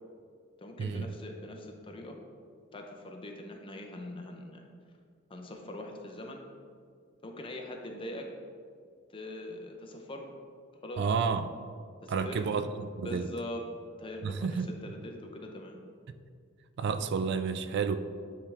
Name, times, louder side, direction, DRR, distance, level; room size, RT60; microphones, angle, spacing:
voice 1, 0.6-2.2 2.7-4.6 5.3-6.5 7.2-8.3 9.1-10.3 10.8-11.0 12.0-12.4 13.0-13.6 14.0-15.8, left 1 dB, 25° left, 2 dB, 0.7 m, -42 dB
voice 2, 11.0-11.5 12.1-12.7 13.0-13.3 14.2-14.7 16.1-16.2 16.8-18.0, right 5 dB, 55° right, 10 dB, 0.3 m, -30 dB
9.6 x 3.5 x 3.3 m, 2.1 s
head